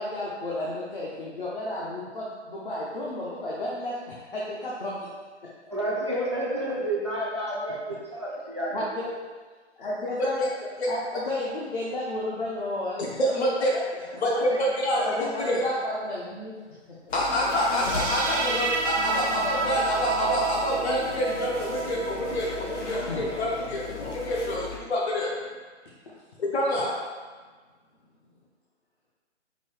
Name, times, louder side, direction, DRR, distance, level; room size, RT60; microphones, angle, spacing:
voice 1, 0.0-5.1 8.7-9.1 9.8-10.4 10.9-13.0 13.7-13.8 14.9-16.7 18.1-18.2 19.5-19.6 22.9-23.2 24.0-24.1 26.7-26.8, left 1 dB, 45° left, -6 dB, 0.7 m, -32 dB
voice 2, 5.7-8.7 14.3-14.6 17.7-17.8, right 1 dB, 25° right, -5 dB, 0.4 m, -30 dB
voice 3, 13.2-13.7 14.2-15.1 15.4-15.6 17.1-25.4 26.4-26.9, equal, 65° left, -4 dB, 1.1 m, -27 dB
sound 1, 17.1-24.8, left 4 dB, 90° left, 0.8 m, -37 dB
sound 2, 17.6-24.6, right 4 dB, 85° right, 0.5 m, -31 dB
5.2 x 2.7 x 3.2 m, 1.4 s
hypercardioid pair, 170°, 36 cm